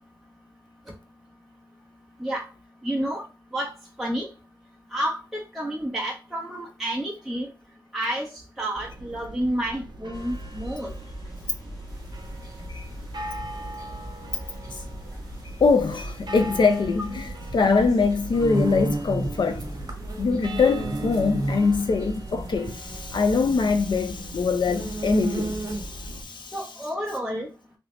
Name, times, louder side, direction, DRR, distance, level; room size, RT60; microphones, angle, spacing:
voice 1, 2.8-3.2 3.5-4.3 4.9-7.5 7.9-10.9 18.7-18.8 26.5-27.5, right 1 dB, ahead, 0.7 m, -30 dB
sound 1, 8.7-26.2, right 2 dB, 70° right, 0.6 m, -40 dB
sound 2, 10.1-26.1, equal, 45° left, 1.7 m, -41 dB
sound 3, 11.9-26.1, right 2 dB, 50° right, 1.1 m, -33 dB
voice 2, 15.6-19.6 20.2-26.5, left 4 dB, 75° left, 0.5 m, -23 dB
2.9 x 2.7 x 3.1 m
wide cardioid pair, 85°, 8 cm